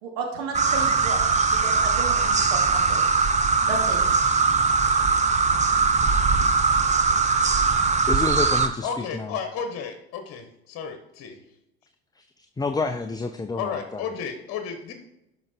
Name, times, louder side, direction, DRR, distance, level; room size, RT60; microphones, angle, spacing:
voice 1, 0.0-1.2 1.5-3.0 3.7-4.0, right 4 dB, 65° right, 1 dB, 2.8 m, -33 dB
sound 1, 0.5-8.7, right 4 dB, 20° right, 1.1 m, -21 dB
voice 2, 8.1-9.3 12.6-14.0, left 3 dB, 10° left, 8 dB, 0.7 m, -29 dB
voice 3, 8.8-11.4 13.6-14.9, left 6 dB, 50° left, 7 dB, 1.5 m, -33 dB
12.0 x 5.8 x 4.6 m, 0.88 s
hypercardioid pair, 75°, 31 cm